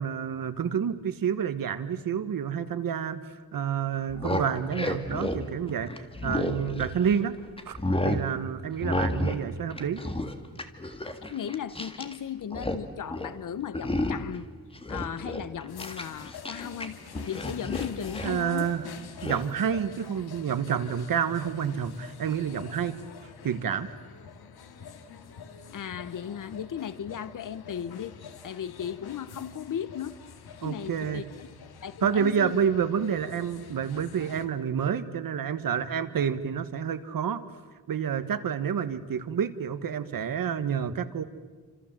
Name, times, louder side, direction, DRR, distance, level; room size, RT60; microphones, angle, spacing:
voice 1, 0.0-7.3 7.6-7.8 8.0-10.0 18.2-18.8 19.2-23.0 23.4-23.9 30.6-31.3 32.0-37.4 37.9-41.2, right 8 dB, 60° right, 11 dB, 1.5 m, -29 dB
sound 1, 4.0-7.2 7.6-8.3 8.8-9.4 9.7-12.2 12.4-12.8 13.1-13.4 13.7-14.4 14.7-16.9 17.1-18.4 19.2-19.4, left 1 dB, 15° left, 1.9 m, -31 dB
voice 2, 11.3-14.5 14.9-17.0 17.3-18.7 25.7-28.1 28.4-30.2 30.6-31.5 31.8-32.5, left 8 dB, 55° left, 15 dB, 1.0 m, -36 dB
sound 2, 15.7-34.4, left 6 dB, 75° left, 2.1 m, -46 dB
29.0 x 26.5 x 7.6 m, 1.4 s
wide cardioid pair, 150°, 39 cm